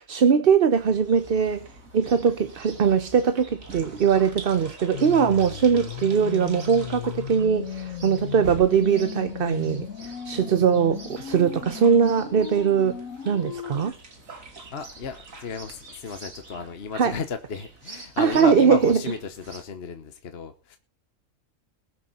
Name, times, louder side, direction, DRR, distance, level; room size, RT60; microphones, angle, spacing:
voice 1, 0.0-13.0 13.3-13.9 16.9-17.1 18.2-19.0, right 6 dB, 50° right, 0.9 m, -21 dB
Chirp tweet, 0.7-19.6, right 3 dB, 90° right, 2.9 m, -46 dB
sound 1, 1.9-15.6, right 3 dB, 70° right, 2.9 m, -48 dB
sound 2, 4.9-13.9, left 9 dB, 80° left, 1.4 m, -36 dB
voice 2, 14.7-20.8, left 5 dB, 50° left, 1.3 m, -34 dB
21.5 x 7.7 x 4.2 m
omnidirectional pair, 1.4 m